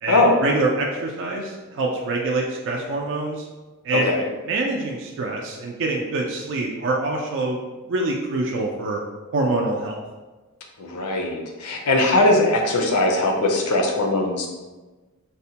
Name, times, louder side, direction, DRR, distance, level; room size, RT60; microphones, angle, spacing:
voice 1, 0.0-3.4 3.8-4.1 4.5-7.6 7.9-9.0 9.3-10.0, right 2 dB, 55° right, 0 dB, 0.4 m, -25 dB
voice 2, 3.9-4.3 10.8-14.5, left 2 dB, 80° left, 1 dB, 0.5 m, -20 dB
4.0 x 2.1 x 2.8 m, 1.2 s
head